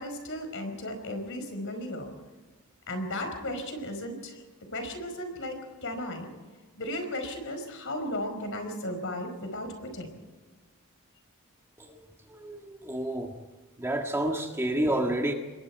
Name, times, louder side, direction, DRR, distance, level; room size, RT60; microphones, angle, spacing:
voice 1, 0.0-2.1 2.9-4.4 4.7-6.3 6.8-10.1, left 1 dB, 60° left, 6 dB, 4.9 m, -35 dB
voice 2, 11.8-13.3 13.8-15.3, right 1 dB, 10° right, 3 dB, 1.6 m, -30 dB
27.0 x 21.5 x 4.7 m, 1.3 s
head